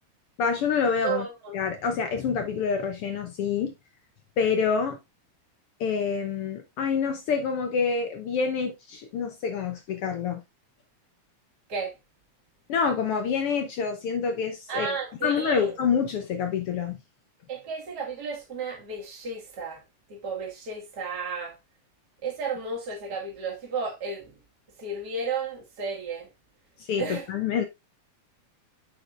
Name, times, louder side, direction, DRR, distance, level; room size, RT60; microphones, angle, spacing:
voice 1, 0.4-1.3 1.5-3.7 4.4-5.0 5.8-10.4 12.7-14.9 15.2-17.0 26.8-27.6, left 6 dB, 75° left, 1.3 m, -27 dB
voice 2, 1.0-1.5 11.7-11.9 14.7-15.7 17.5-19.8 20.1-21.6 22.2-24.3 24.8-26.3 27.0-27.3, right 4 dB, 35° right, 2.2 m, -33 dB
7.7 x 6.2 x 2.5 m
omnidirectional pair, 3.7 m